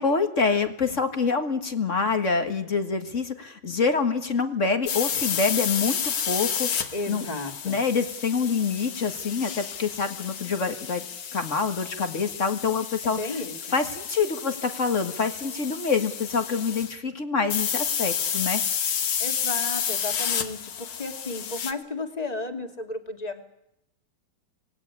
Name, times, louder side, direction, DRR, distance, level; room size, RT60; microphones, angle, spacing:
voice 1, 0.0-7.2 7.6-11.0 11.3-13.4 13.7-18.6, left 5 dB, 35° left, 7 dB, 1.3 m, -26 dB
sound 1, 4.9-16.9 17.5-21.7, left 8 dB, 50° left, 1.9 m, -31 dB
voice 2, 6.9-7.8 13.2-13.5 19.2-23.4, left 2 dB, 15° left, 5 dB, 2.1 m, -33 dB
26.0 x 19.0 x 9.8 m, 0.82 s
omnidirectional pair, 3.5 m